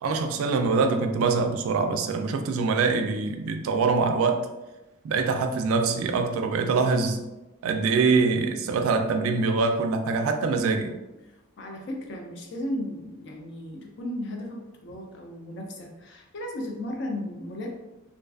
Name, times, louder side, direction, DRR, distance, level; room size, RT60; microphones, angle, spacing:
voice 1, 0.0-4.5 5.0-7.3 7.6-11.0, right 4 dB, 80° right, 6 dB, 0.3 m, -24 dB
voice 2, 11.3-17.7, left 1 dB, 55° left, 1 dB, 0.4 m, -35 dB
2.4 x 2.3 x 2.3 m, 1.0 s
head